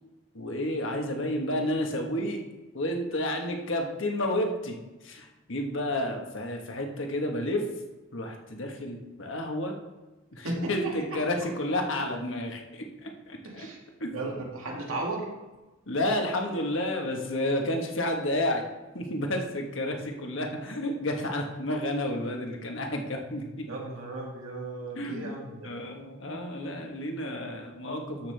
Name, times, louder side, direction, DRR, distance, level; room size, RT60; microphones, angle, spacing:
voice 1, 0.3-2.4 2.7-4.8 5.0-7.6 8.1-9.8 10.3-13.7 14.0-14.2 15.9-18.6 18.9-23.7 24.9-25.3 25.6-28.3, left 1 dB, 65° left, 2 dB, 1.4 m, -31 dB
voice 2, 10.4-11.2 13.4-13.8 14.1-15.3 23.7-25.7, right 2 dB, 80° right, -2 dB, 2.3 m, -35 dB
13.0 x 6.0 x 3.4 m, 1.1 s
head